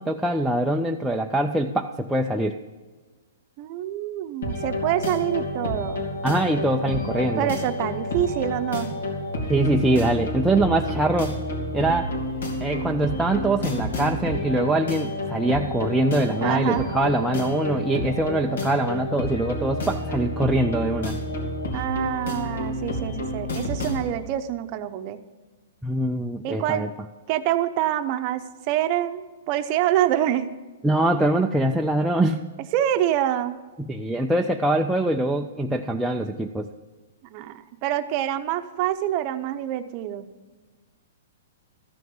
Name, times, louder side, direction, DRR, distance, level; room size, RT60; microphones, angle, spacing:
voice 1, 0.0-2.6 6.2-7.5 9.5-11.4 11.7-12.1 12.6-21.2 25.8-26.9 30.8-32.4 33.8-36.7, right 1 dB, 5° right, 1 dB, 0.4 m, -23 dB
voice 2, 3.6-6.0 7.4-9.0 16.4-16.9 21.7-25.2 26.4-26.9 27.3-30.5 32.7-33.6 37.3-40.3, right 12 dB, 30° right, 8 dB, 0.7 m, -26 dB
sound 1, 4.4-24.1, left 1 dB, 80° left, 3.0 m, -29 dB
14.0 x 6.5 x 7.1 m, 1.3 s
hypercardioid pair, 165°, 0 cm